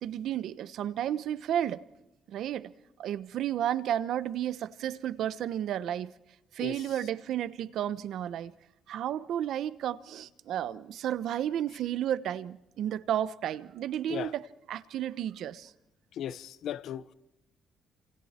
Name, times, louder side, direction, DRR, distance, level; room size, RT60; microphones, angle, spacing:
voice 1, 0.0-1.8 2.3-2.7 3.0-6.1 6.5-8.5 8.9-15.7, right 11 dB, 75° right, 1.0 m, -32 dB
voice 2, 16.2-17.1, left 10 dB, 75° left, 1.0 m, -36 dB
29.0 x 28.0 x 4.4 m
cardioid pair, 130°, 0 cm